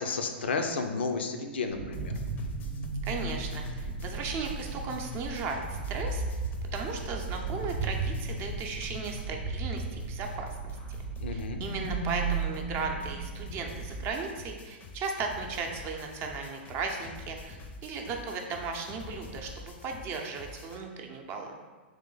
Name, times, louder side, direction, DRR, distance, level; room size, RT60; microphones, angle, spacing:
voice 1, 0.0-2.1 11.2-11.6, left 4 dB, 75° left, 6 dB, 0.4 m, -32 dB
sound 1, 1.7-14.1, right 3 dB, 70° right, 0.8 m, -35 dB
sound 2, 1.9-9.5 9.8-20.8, left 3 dB, 25° left, 0.5 m, -47 dB
voice 2, 3.0-6.2 6.7-10.8 11.3-21.6, right 4 dB, 40° right, 2 dB, 0.6 m, -36 dB
3.3 x 3.2 x 3.8 m, 1.4 s
hypercardioid pair, 110°, 6 cm